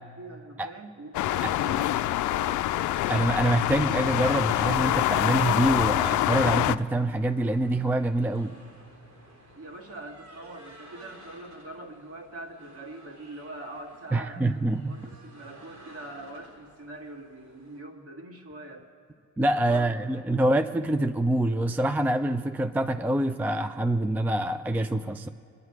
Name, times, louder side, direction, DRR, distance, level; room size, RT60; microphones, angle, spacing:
voice 1, 0.2-2.7 9.6-14.4 14.9-18.9 19.5-20.1, right 2 dB, 50° right, 2 dB, 2.0 m, -43 dB
sound 1, 1.1-6.8, left 14 dB, 75° left, 0.4 m, -25 dB
voice 2, 3.1-8.6 14.1-15.0 19.4-25.3, right 1 dB, 5° right, 9 dB, 0.4 m, -25 dB
sound 2, 3.6-17.8, right 1 dB, 75° right, 4.0 m, -53 dB
23.0 x 10.5 x 4.8 m, 2.6 s
cardioid pair, 90°, 30 cm